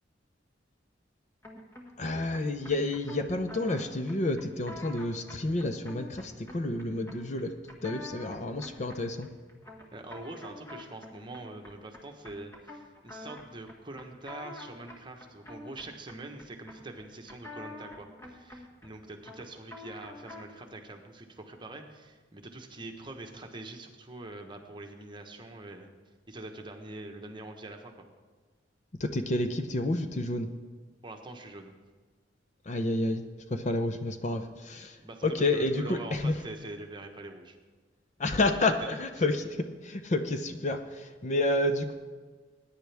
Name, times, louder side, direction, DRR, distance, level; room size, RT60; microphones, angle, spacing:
sound 1, 1.4-20.6, left 2 dB, 15° left, 1.7 m, -48 dB
voice 1, 2.0-7.5 7.8-9.3 29.0-30.5 32.7-33.2 33.5-35.0 35.2-36.3 38.2-41.9, left 2 dB, 40° left, 8 dB, 0.7 m, -29 dB
voice 2, 9.9-25.9 26.3-27.9 31.0-31.7 35.0-37.6, right 2 dB, 25° right, 3 dB, 1.2 m, -44 dB
20.0 x 9.8 x 3.5 m, 1.4 s
head